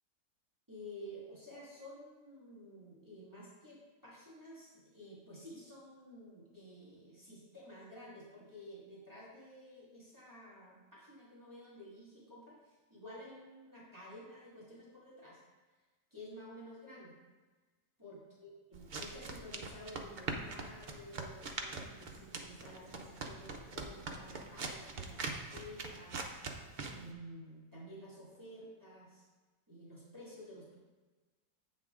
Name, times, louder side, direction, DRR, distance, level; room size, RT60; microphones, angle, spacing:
voice 1, 0.7-15.4 16.1-17.1 18.0-26.2 26.9-29.2 29.7-30.8, equal, 10° right, -8 dB, 2.1 m, -52 dB
sound 1, 18.7-27.1, right 3 dB, 70° right, 0.4 m, -43 dB
8.3 x 6.3 x 3.7 m, 1.3 s
omnidirectional pair, 1.8 m